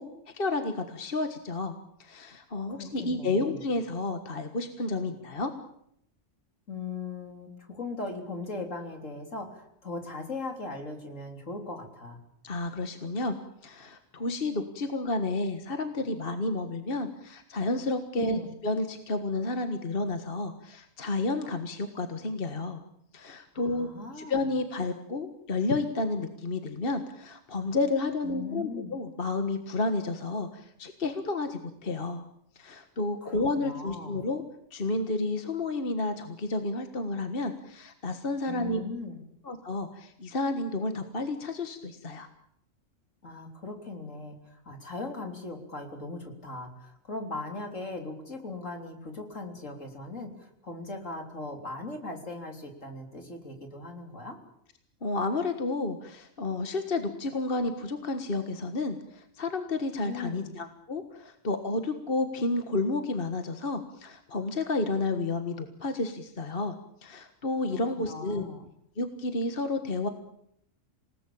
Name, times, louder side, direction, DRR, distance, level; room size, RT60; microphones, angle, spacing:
voice 1, 0.0-1.7 2.0-5.5 12.4-13.3 13.6-22.8 23.1-23.9 24.2-32.2 32.6-34.4 34.7-38.8 39.4-42.3 55.0-66.7 67.0-68.5 69.0-70.1, left 2 dB, 45° left, 7 dB, 1.8 m, -31 dB
voice 2, 2.7-3.6 6.7-12.2 18.2-18.5 23.5-24.5 28.2-28.9 33.2-34.3 38.5-39.2 43.2-54.4 60.0-60.6 67.7-68.6, left 3 dB, 70° left, 4 dB, 4.0 m, -39 dB
27.5 x 19.0 x 8.7 m, 0.73 s
omnidirectional pair, 1.4 m